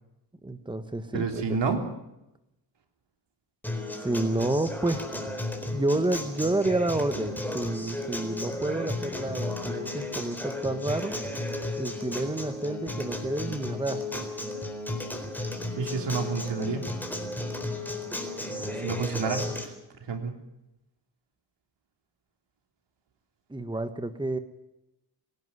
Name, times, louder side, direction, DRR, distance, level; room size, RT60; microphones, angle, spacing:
voice 1, 0.4-1.6 4.0-5.0 5.7-11.2 11.8-14.3 18.5-19.0 23.5-24.4, right 2 dB, 10° right, 9 dB, 1.4 m, -30 dB
voice 2, 1.1-1.9 15.8-17.0 18.8-19.7 20.0-20.4, right 4 dB, 80° right, 4 dB, 3.5 m, -30 dB
Acoustic guitar, 3.6-19.6, left 2 dB, 5° left, 4.1 m, -34 dB
25.0 x 11.5 x 9.6 m, 0.90 s
cardioid pair, 85°, 42 cm